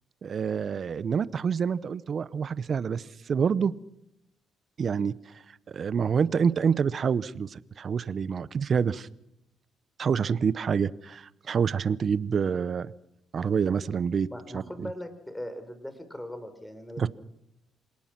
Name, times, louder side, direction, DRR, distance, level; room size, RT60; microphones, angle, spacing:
voice 1, 0.2-3.7 4.8-5.1 5.7-9.1 10.0-12.9 13.3-14.3 14.5-14.9 17.0-17.1, right 6 dB, 50° right, 18 dB, 0.7 m, -27 dB
voice 2, 14.3-17.1, left 1 dB, 5° left, 10 dB, 4.1 m, -39 dB
26.5 x 18.5 x 6.0 m, 0.82 s
cardioid pair, 90°, 0 cm